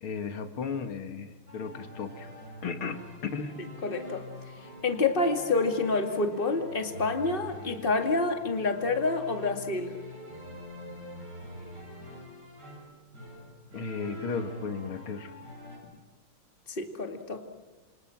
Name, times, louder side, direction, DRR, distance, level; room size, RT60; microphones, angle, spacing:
voice 1, 0.0-2.3 2.6-3.6 13.7-15.3, left 5 dB, 80° left, 7 dB, 2.6 m, -35 dB
sound 1, 1.5-15.8, equal, 50° right, 8.0 m, -45 dB
voice 2, 3.8-4.3 4.8-9.9 16.7-17.4, left 3 dB, 25° left, 5 dB, 2.3 m, -28 dB
28.5 x 26.5 x 6.0 m, 1.1 s
omnidirectional pair, 2.3 m